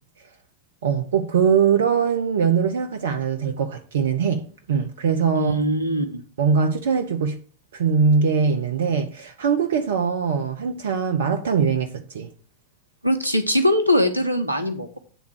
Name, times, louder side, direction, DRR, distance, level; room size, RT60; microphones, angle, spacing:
voice 1, 0.8-5.7 6.4-7.4 7.7-12.3, right 6 dB, 60° right, 0.6 m, -22 dB
voice 2, 5.3-6.2 13.0-15.0, equal, 85° right, 0.9 m, -21 dB
9.0 x 3.5 x 6.3 m
figure-of-eight pair, 90°, 0 cm